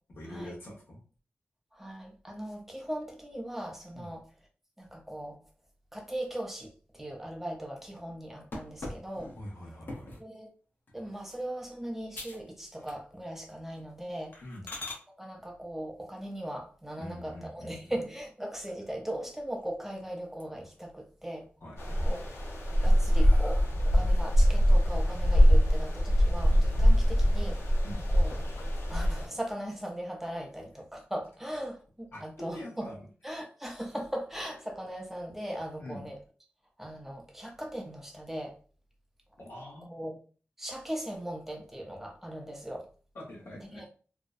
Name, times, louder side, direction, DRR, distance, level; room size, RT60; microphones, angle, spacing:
voice 1, 0.1-1.0 3.9-4.1 9.4-10.1 14.4-14.7 17.0-17.9 21.6-22.1 26.7-26.9 27.8-28.1 32.1-33.0 35.8-36.1 39.4-40.0 43.1-43.8, left 1 dB, 70° left, 0.9 m, -44 dB
voice 2, 1.7-4.2 4.8-5.4 5.9-9.3 10.2-10.5 10.9-14.4 15.2-21.5 22.0-22.2 22.8-27.6 28.1-28.3 28.9-32.9 33.2-36.2 36.8-38.6 39.9-40.2 40.6-42.9 43.7-43.9, right 1 dB, 5° right, 0.5 m, -39 dB
sound 1, 8.5-10.3 10.9-11.2 11.6-11.7 12.1-12.5 12.8-13.3 13.7-13.8 14.3-15.0 17.0-17.7 18.2-18.3 18.7-18.8 19.1-19.9 20.2-20.8 21.2-21.8 22.4-24.1, left 2 dB, 50° left, 0.6 m, -44 dB
sound 2, 21.8-29.3, equal, 85° left, 0.6 m, -23 dB
2.6 x 2.1 x 2.4 m
wide cardioid pair, 115°, 4 cm